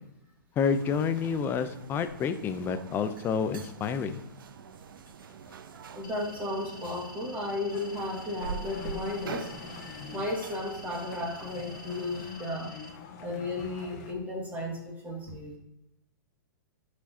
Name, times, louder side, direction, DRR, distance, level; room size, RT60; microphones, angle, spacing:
voice 1, 0.6-4.1, left 6 dB, 20° left, 10 dB, 0.6 m, -29 dB
sound 1, 0.6-12.3, right 5 dB, 80° right, 0.7 m, -45 dB
sound 2, 6.0-12.9, left 2 dB, 70° left, 1.2 m, -49 dB
voice 2, 6.0-9.5 10.1-12.7 13.2-14.8 15.0-15.5, left 2 dB, 15° right, -1 dB, 2.1 m, -34 dB
sound 3, 7.7-14.1, left 5 dB, 45° left, 1.4 m, -45 dB
11.0 x 6.2 x 2.8 m, 0.89 s
hypercardioid pair, 145°, 11 cm